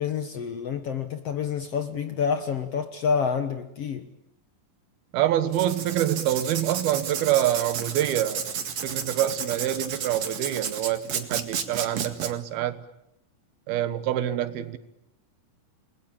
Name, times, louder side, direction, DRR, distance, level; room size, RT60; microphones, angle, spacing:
voice 1, 0.0-4.1, left 6 dB, 65° left, 1.6 m, -28 dB
voice 2, 5.1-8.5 8.8-12.8 13.7-14.8, right 12 dB, 85° right, 3.2 m, -26 dB
Writing, 5.5-12.3, right 7 dB, 50° right, 2.9 m, -32 dB
29.5 x 21.5 x 8.9 m
omnidirectional pair, 4.3 m